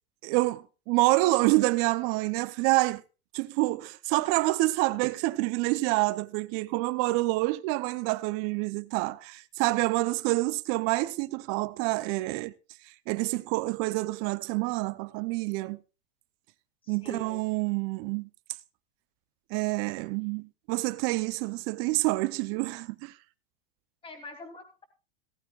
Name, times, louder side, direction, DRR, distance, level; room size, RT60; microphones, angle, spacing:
voice 1, 0.2-3.0 3.3-12.5 12.8-15.8 16.9-18.3 19.5-23.1, right 21 dB, 45° right, 0.7 m, -27 dB
voice 2, 16.8-17.4 24.0-24.8, left 1 dB, 15° left, 3.0 m, -44 dB
17.0 x 14.0 x 2.4 m
hypercardioid pair, 105°, 30 cm